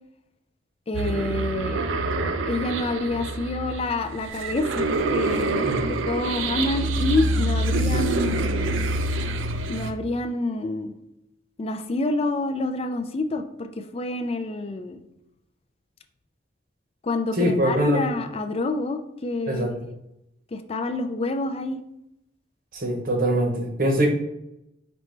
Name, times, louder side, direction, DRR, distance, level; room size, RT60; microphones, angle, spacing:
voice 1, 0.9-1.8 2.5-5.6 6.1-8.7 9.7-10.9 11.6-13.7 13.9-15.0 17.0-19.7 20.5-21.8, left 2 dB, 30° left, 7 dB, 0.3 m, -27 dB
sound 1, 0.9-9.9, right 2 dB, 90° right, 0.4 m, -26 dB
voice 2, 5.6-6.0 17.4-18.0 19.5-19.7 22.7-24.1, right 1 dB, 45° right, 3 dB, 0.9 m, -23 dB
5.1 x 3.1 x 3.2 m, 0.85 s
head